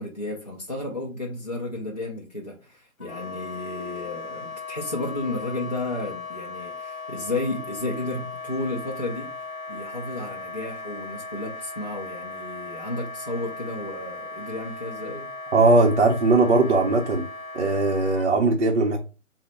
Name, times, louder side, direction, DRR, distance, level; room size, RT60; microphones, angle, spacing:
voice 1, 0.0-9.3 9.7-15.3, left 2 dB, 30° left, 0.4 m, -32 dB
Wind instrument woodwind instrument, 3.0-18.3, left 3 dB, 70° left, 0.7 m, -37 dB
voice 2, 15.5-17.2 17.5-19.0, right 2 dB, 50° right, 0.6 m, -19 dB
4.1 x 2.0 x 4.1 m
figure-of-eight pair, 145°, 42 cm